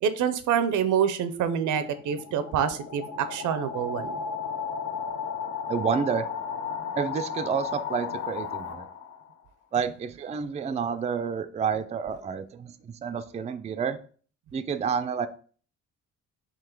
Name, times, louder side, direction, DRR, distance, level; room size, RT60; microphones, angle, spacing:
voice 1, 0.0-4.2, right 8 dB, 75° right, 11 dB, 0.6 m, -26 dB
sound 1, 1.6-9.3, left 6 dB, 60° left, 0.8 m, -34 dB
voice 2, 5.7-6.3 7.0-8.9 9.7-14.0 14.5-15.3, right 6 dB, 25° right, 9 dB, 0.4 m, -29 dB
3.8 x 2.9 x 4.4 m, 0.42 s
cardioid pair, 90°, 30 cm